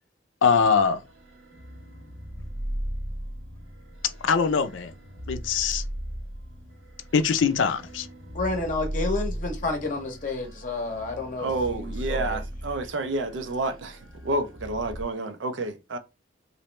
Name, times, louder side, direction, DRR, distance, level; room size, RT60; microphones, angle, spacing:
voice 1, 0.4-1.0 4.2-4.9 5.3-5.8 7.1-8.1, left 6 dB, 85° left, 0.5 m, -22 dB
sound 1, 0.6-15.0, equal, 85° right, 1.0 m, -37 dB
voice 2, 8.3-12.4, left 3 dB, 45° left, 0.7 m, -30 dB
voice 3, 11.4-16.0, right 2 dB, 70° right, 0.5 m, -29 dB
3.0 x 2.6 x 3.1 m
head